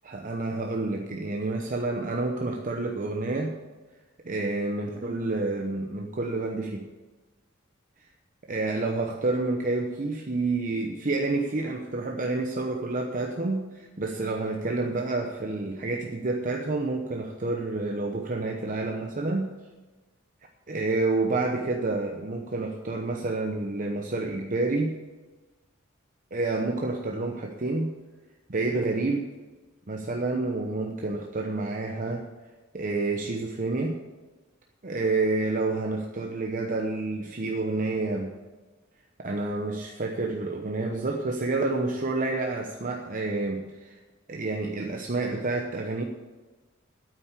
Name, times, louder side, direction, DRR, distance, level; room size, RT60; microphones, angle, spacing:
voice 1, 0.0-3.5 4.2-6.9 8.5-19.5 20.7-25.0 26.3-27.9 28.5-29.3 29.9-32.3 32.7-34.0 34.8-38.3 39.2-44.0 44.3-46.0, right 2 dB, 45° right, 2 dB, 0.9 m, -29 dB
9.1 x 9.0 x 8.4 m, 1.3 s
head